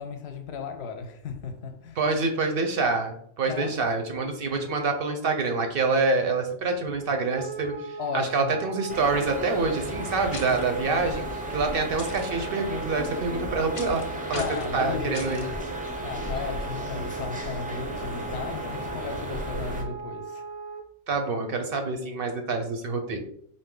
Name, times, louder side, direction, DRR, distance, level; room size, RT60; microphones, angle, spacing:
voice 1, 0.0-2.0 3.5-3.8 8.0-8.6 14.3-15.5 16.0-20.4, left 5 dB, 70° left, 0.8 m, -35 dB
voice 2, 2.0-11.2 11.5-14.0 14.3-14.4 14.7-15.4 21.1-23.2, right 3 dB, 60° right, 0.7 m, -26 dB
Wind instrument woodwind instrument, 7.4-20.8, right 3 dB, 85° right, 0.9 m, -38 dB
sound 1, 8.9-19.8, right 1 dB, 10° right, 0.4 m, -35 dB
sound 2, 10.3-10.6 12.0-12.3 13.7-14.0 14.3-14.7 15.1-15.5, left 3 dB, 40° left, 0.5 m, -39 dB
4.3 x 2.6 x 3.7 m
omnidirectional pair, 1.2 m